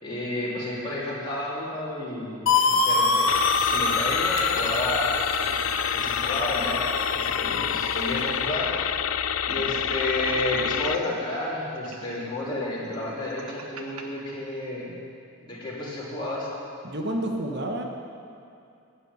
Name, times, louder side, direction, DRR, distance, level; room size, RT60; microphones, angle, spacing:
voice 1, 0.0-5.6 5.9-8.7 9.5-14.9 15.4-16.5, left 1 dB, 20° left, -7 dB, 3.1 m, -31 dB
sound 1, 2.5-8.2, left 3 dB, 60° left, 1.2 m, -26 dB
sound 2, 3.3-11.0, left 9 dB, 85° left, 0.5 m, -28 dB
sound 3, 4.4-6.1 6.5-6.6 6.8-8.6 8.9-9.0 9.5-11.1 11.7-14.0, right 4 dB, 85° right, 1.2 m, -44 dB
voice 2, 16.8-17.8, right 1 dB, 50° right, 2 dB, 1.3 m, -29 dB
11.0 x 7.9 x 9.7 m, 2.5 s
head